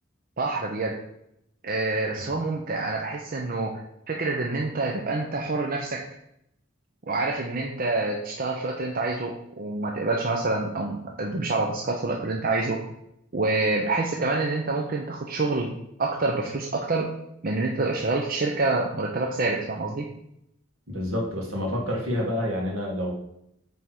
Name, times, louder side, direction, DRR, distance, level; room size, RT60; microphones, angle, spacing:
voice 1, 0.4-1.0 1.6-3.8 4.1-6.0 7.1-12.8 13.3-15.7 16.0-17.1 17.4-20.1, right 3 dB, 45° right, 1 dB, 0.7 m, -27 dB
voice 2, 20.9-23.1, left 1 dB, 70° right, -1 dB, 2.0 m, -28 dB
8.3 x 3.5 x 4.6 m, 0.78 s
head